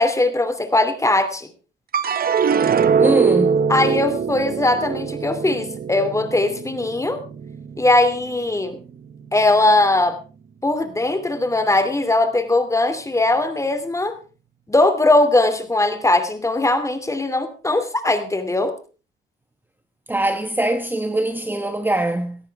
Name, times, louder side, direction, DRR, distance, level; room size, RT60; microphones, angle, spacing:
voice 1, 0.0-1.5 3.7-7.2 7.8-8.8 9.3-10.2 10.6-14.2 14.7-18.7, left 2 dB, 15° left, 2.7 m, -19 dB
sound 1, 1.9-8.4 8.8-9.5, right 6 dB, 50° right, 1.0 m, -22 dB
voice 2, 3.0-3.6 20.1-22.4, right 1 dB, 10° right, 1.2 m, -22 dB
18.0 x 13.5 x 3.5 m
cardioid pair, 90°, 20 cm